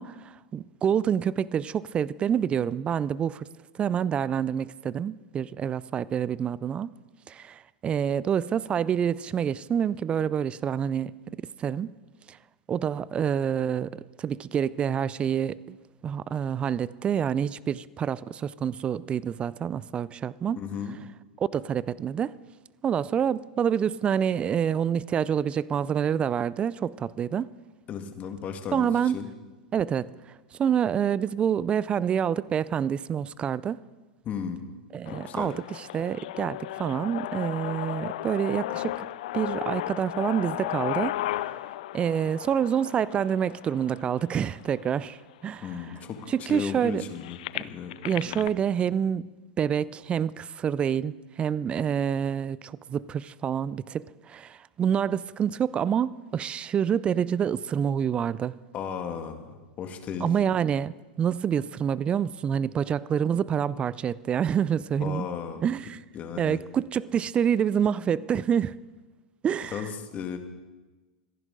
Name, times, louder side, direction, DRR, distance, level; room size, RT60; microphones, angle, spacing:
voice 1, 0.0-3.5 3.8-6.9 7.3-11.9 12.3-12.4 12.7-15.8 16.0-20.6 21.4-22.3 22.8-27.5 28.7-29.2 29.7-30.1 30.5-33.8 34.9-35.5 35.9-39.0 39.3-41.2 41.9-45.7 46.3-47.0 48.0-49.3 49.6-58.6 60.2-65.3 65.6-66.0 66.4-68.8 69.4-69.9, right 8 dB, 25° right, 0.4 m, -27 dB
voice 2, 20.6-21.0 27.9-29.3 34.2-34.7 35.1-35.5 45.6-47.9 48.2-48.5 58.7-60.3 65.0-65.7 66.1-66.6 69.7-70.4, left 7 dB, 35° left, 1.9 m, -35 dB
sound 1, 35.0-45.0 45.7-45.8 46.0-48.5, left 15 dB, 65° left, 0.4 m, -35 dB
26.0 x 11.0 x 3.9 m
hypercardioid pair, 100°, 4 cm